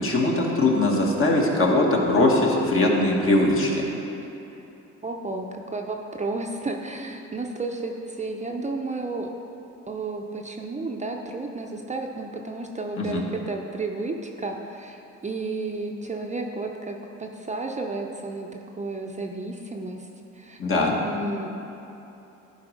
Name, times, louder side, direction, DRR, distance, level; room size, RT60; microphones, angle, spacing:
voice 1, 0.0-3.9 13.0-13.2 20.6-21.0, left 2 dB, 45° left, -1 dB, 1.5 m, -21 dB
voice 2, 5.0-9.3 9.9-20.1 20.3-20.6 20.9-21.5, right 3 dB, 25° right, 2 dB, 0.6 m, -32 dB
11.5 x 4.2 x 5.0 m, 3.0 s
cardioid pair, 90°, 30 cm